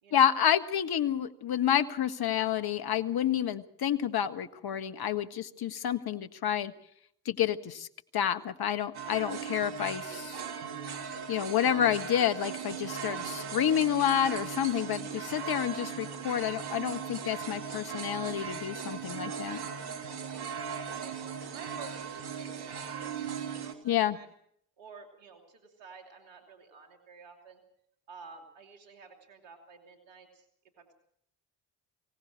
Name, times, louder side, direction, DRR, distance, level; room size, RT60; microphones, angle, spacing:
voice 1, 0.1-6.7 7.2-7.9 8.1-10.4 11.3-19.6 23.8-24.2, left 10 dB, 50° left, 11 dB, 1.5 m, -29 dB
sound 1, 8.9-23.7, right 7 dB, 55° right, 2.7 m, -38 dB
voice 2, 19.1-19.5 20.2-21.2 21.5-23.3 23.6-24.3 24.8-27.6 28.1-30.5 30.8-30.9, right 5 dB, 70° right, 3 dB, 3.1 m, -51 dB
24.0 x 17.5 x 6.3 m, 0.68 s
hypercardioid pair, 45°, 46 cm